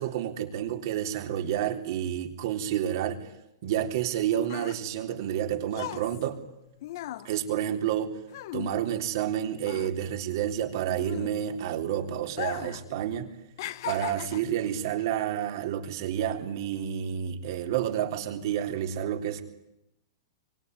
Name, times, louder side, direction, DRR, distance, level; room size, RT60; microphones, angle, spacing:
voice 1, 0.0-3.3 3.6-6.4 7.2-8.2 8.5-13.3 13.8-19.4, right 10 dB, 60° right, 5 dB, 3.6 m, -30 dB
sound 1, 4.0-9.3 9.6-11.8 12.3-12.9 13.1-14.6 15.3-15.5, left 13 dB, 60° left, 1.2 m, -38 dB
25.5 x 24.5 x 9.7 m, 0.86 s
hypercardioid pair, 135°, 2 cm